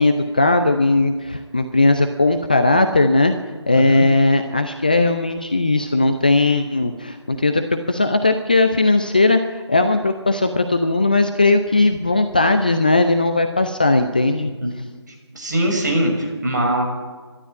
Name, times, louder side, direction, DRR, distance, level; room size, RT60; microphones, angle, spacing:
voice 1, 0.0-3.3 3.7-14.5, left 2 dB, 20° left, 8 dB, 0.6 m, -18 dB
voice 2, 3.7-4.1 14.6-14.7 15.3-16.8, right 1 dB, 40° right, 1 dB, 6.6 m, -21 dB
22.0 x 12.5 x 9.5 m, 1.4 s
figure-of-eight pair, 165°, 15 cm